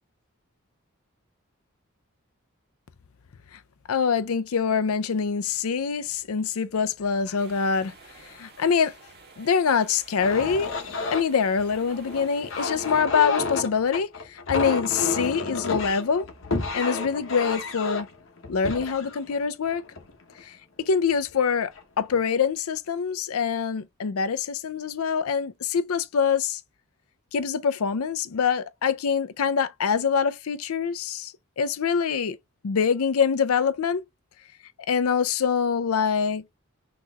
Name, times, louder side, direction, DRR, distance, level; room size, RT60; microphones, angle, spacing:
voice 1, 3.9-7.9 8.2-9.0 9.4-10.7 11.1-16.3 16.7-18.1 18.5-19.8 20.4-20.6 20.9-26.6 27.3-32.4 32.6-34.0 34.9-36.6, left 6 dB, 85° left, 0.5 m, -25 dB
sound 1, 7.3-13.0, right 4 dB, 45° right, 1.8 m, -51 dB
sound 2, 10.2-20.4 21.1-21.3 21.8-22.2, left 4 dB, 65° left, 0.9 m, -31 dB
5.9 x 3.0 x 2.3 m
head